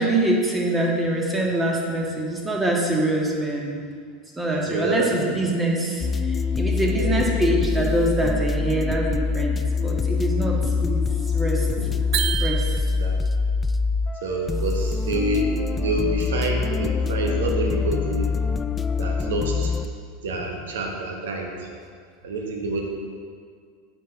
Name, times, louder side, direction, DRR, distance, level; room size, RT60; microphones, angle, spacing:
voice 1, 0.0-3.8 4.3-11.7 12.4-12.9, right 1 dB, 15° right, -2 dB, 1.6 m, -24 dB
voice 2, 4.5-5.4 6.8-7.1 11.8-11.9 12.8-13.1 14.2-18.3 19.0-19.7 20.2-21.7 22.2-22.8, right 2 dB, 70° right, 1 dB, 1.2 m, -27 dB
sound 1, 6.0-19.9, left 4 dB, 20° left, 0.3 m, -24 dB
sound 2, 12.1-13.3, right 11 dB, 55° right, 0.4 m, -28 dB
9.3 x 5.2 x 3.8 m, 2.1 s
hypercardioid pair, 85°, 0 cm